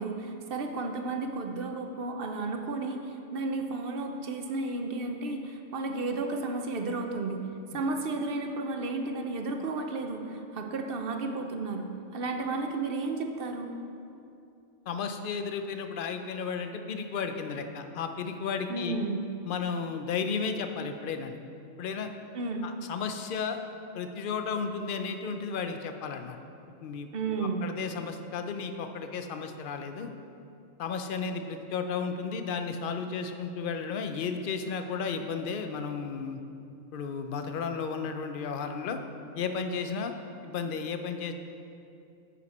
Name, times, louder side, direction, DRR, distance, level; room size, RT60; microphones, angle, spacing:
voice 1, 0.0-7.4 7.7-11.9 12.1-13.7 18.7-19.3 22.3-22.7 27.1-27.7, right 3 dB, 55° right, 4 dB, 0.8 m, -33 dB
voice 2, 14.9-19.0 19.4-21.4 21.8-22.1 22.6-23.6 23.9-26.4 26.8-30.1 30.8-36.4 36.9-39.0 39.4-40.1 40.4-41.3, left 5 dB, 55° left, 7 dB, 0.6 m, -33 dB
9.4 x 7.1 x 4.2 m, 2.6 s
omnidirectional pair, 1.4 m